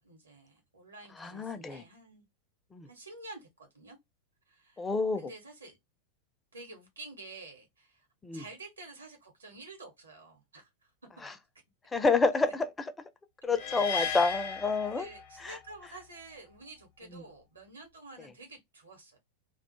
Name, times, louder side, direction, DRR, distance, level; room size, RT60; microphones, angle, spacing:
voice 1, 0.0-2.2 2.9-4.0 4.5-4.9 5.1-5.8 6.5-8.1 8.3-10.7 12.4-12.5 13.8-14.5 14.8-19.2, right 2 dB, 75° right, 0.9 m, -49 dB
voice 2, 1.2-1.8 2.7-2.9 4.8-5.3 8.2-8.4 11.2-11.3 11.9-12.7 13.4-15.1 15.4-15.6 17.1-17.2, left 4 dB, 15° left, 0.4 m, -28 dB
sound 1, 13.5-15.7, left 6 dB, 50° left, 0.6 m, -36 dB
2.3 x 2.0 x 3.0 m
figure-of-eight pair, 90°, 0 cm